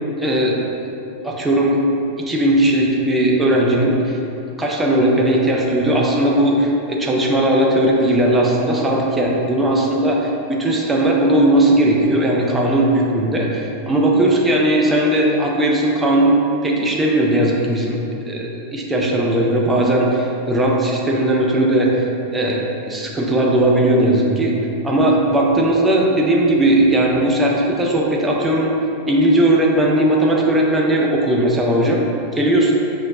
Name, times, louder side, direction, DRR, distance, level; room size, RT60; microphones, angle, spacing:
voice 1, 0.2-0.6 1.2-1.9 2.2-4.2 4.6-18.0 18.3-22.6 22.9-24.5 24.8-28.7 29.1-32.0 32.3-32.7, right 1 dB, 10° right, -2 dB, 0.4 m, -17 dB
5.6 x 2.1 x 2.3 m, 2.9 s
figure-of-eight pair, 90°, 0 cm